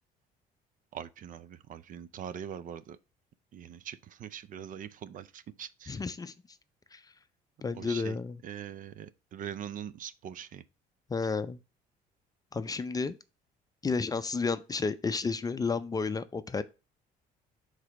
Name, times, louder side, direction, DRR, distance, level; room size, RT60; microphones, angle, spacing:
voice 1, 0.9-3.0 3.5-6.0 7.8-8.1 8.4-10.6, right 9 dB, 50° right, 0.5 m, -42 dB
voice 2, 5.9-6.3 6.9-7.0 7.6-8.4 11.1-11.6 12.5-13.2 13.8-16.6, left 4 dB, 20° left, 0.5 m, -31 dB
4.9 x 4.0 x 5.9 m
cardioid pair, 110°, 17 cm